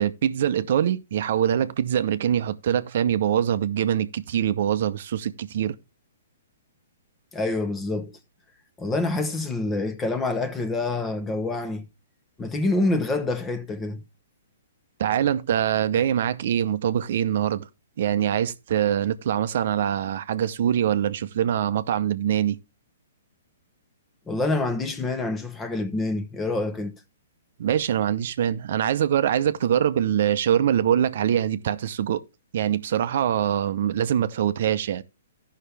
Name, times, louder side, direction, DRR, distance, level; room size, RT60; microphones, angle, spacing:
voice 1, 0.0-5.8 15.0-17.7 18.0-22.6 27.6-32.2 32.5-35.0, right 10 dB, 60° right, 0.7 m, -24 dB
voice 2, 7.3-8.1 8.8-11.9 12.4-14.0 24.3-26.9, left 2 dB, 15° left, 0.9 m, -26 dB
14.0 x 5.7 x 3.3 m
hypercardioid pair, 140°, 0 cm